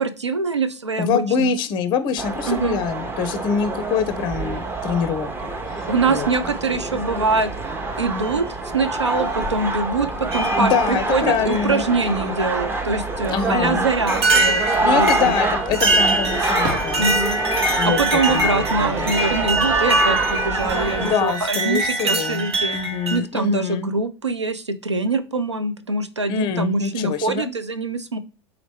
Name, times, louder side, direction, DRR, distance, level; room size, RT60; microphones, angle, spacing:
voice 1, 0.0-1.5 2.5-2.8 5.9-7.5 8.0-14.6 14.9-15.3 17.0-17.4 17.8-22.8 23.1-28.2, right 3 dB, 85° right, 12 dB, 0.5 m, -24 dB
voice 2, 1.0-5.3 5.7-6.3 10.6-11.8 13.3-13.8 14.8-17.2 17.7-18.0 18.3-19.2 21.0-23.9 26.3-27.5, left 6 dB, 35° left, 11 dB, 0.5 m, -24 dB
sound 1, 2.2-21.1, right 2 dB, 15° right, 0.7 m, -26 dB
sound 2, 4.2-5.1 6.2-6.3 7.3-7.6 8.2-8.4 9.1-9.2 10.3-11.0 11.5-12.3 13.4-13.5 14.1-23.2, right 2 dB, 70° right, 1.1 m, -24 dB
3.7 x 2.9 x 3.3 m, 0.35 s
figure-of-eight pair, 80°, 14 cm